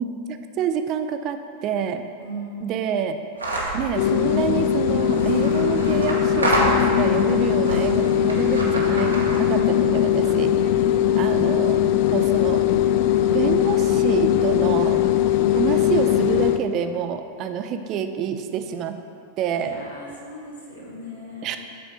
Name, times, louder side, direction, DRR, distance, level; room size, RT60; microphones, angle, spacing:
voice 1, 0.0-2.0 2.6-3.2 3.7-10.5 11.2-11.8 12.1-12.6 13.3-15.0 15.5-19.0 19.4-19.7 21.4-21.6, right 7 dB, 35° right, 8 dB, 0.5 m, -27 dB
voice 2, 2.2-2.7 19.5-21.6, equal, 80° left, -6 dB, 1.5 m, -38 dB
sound 1, 3.4-3.8 5.0-7.2 7.6-9.6, right 1 dB, 80° right, 1.2 m, -27 dB
sound 2, 3.9-16.6, left 10 dB, 45° left, 0.3 m, -20 dB
8.3 x 4.3 x 5.4 m, 2.4 s
figure-of-eight pair, 90°, 0 cm